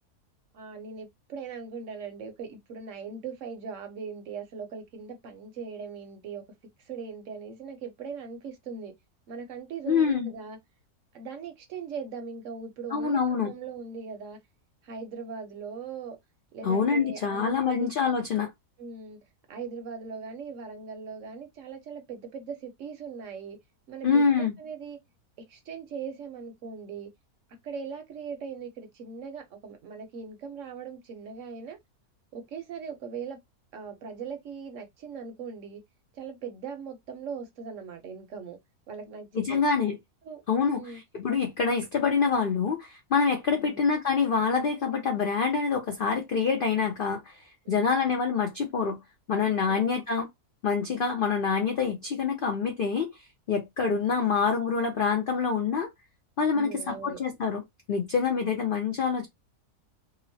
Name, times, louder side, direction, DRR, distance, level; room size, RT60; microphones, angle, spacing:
voice 1, 0.5-6.4 6.8-8.9 9.3-10.6 11.1-14.4 14.8-16.2 16.5-17.9 18.8-19.2 19.5-23.6 23.9-25.0 25.4-27.1 27.6-31.8 32.3-33.4 33.7-35.8 36.1-38.6 38.9-39.6 40.2-40.4 40.7-41.0 43.5-43.9 47.6-47.9 49.7-49.8 54.2-54.6 56.5-57.2, right 5 dB, 65° right, 0.8 m, -40 dB
voice 2, 9.9-10.3 12.9-13.5 16.6-18.5 24.0-24.5 39.3-40.0 40.5-47.4 47.7-49.0 49.3-50.3 50.6-53.1 53.5-55.9 56.4-57.6 57.9-59.3, left 5 dB, 80° left, 0.4 m, -26 dB
2.9 x 2.0 x 2.6 m
omnidirectional pair, 1.6 m